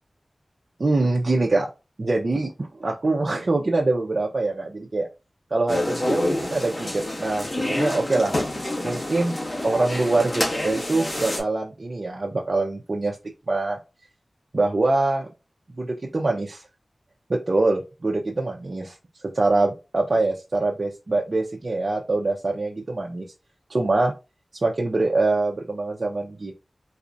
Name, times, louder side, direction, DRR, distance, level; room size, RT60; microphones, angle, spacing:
voice 1, 0.8-1.7 2.0-5.1 5.5-8.3 8.8-13.2 13.5-13.8 14.5-15.3 15.8-16.6 17.3-19.0 19.2-23.3 23.7-24.1 24.6-26.5, right 2 dB, 60° right, -1 dB, 0.7 m, -24 dB
sound 1, 5.7-11.4, left 1 dB, 45° left, 1.4 m, -27 dB
4.1 x 2.4 x 2.6 m, 0.27 s
wide cardioid pair, 50°, 0 cm